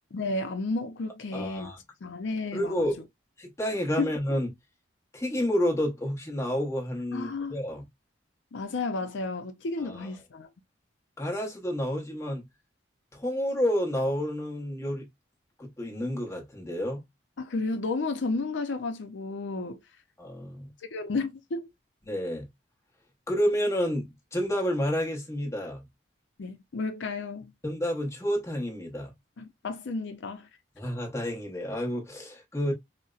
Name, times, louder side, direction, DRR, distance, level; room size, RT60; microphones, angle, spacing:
voice 1, 0.1-1.7 2.0-2.7 4.0-4.1 7.1-7.6 8.5-10.5 17.4-19.8 20.9-21.7 26.4-27.5 29.4-30.5, left 3 dB, 70° left, 0.5 m, -32 dB
voice 2, 1.3-1.8 2.5-3.0 3.4-4.5 5.1-7.8 9.8-10.1 11.2-12.5 13.1-15.1 15.6-17.0 20.2-20.7 22.0-22.5 23.3-25.9 27.6-29.1 30.8-32.7, equal, 15° left, 0.9 m, -30 dB
4.1 x 2.0 x 2.3 m
head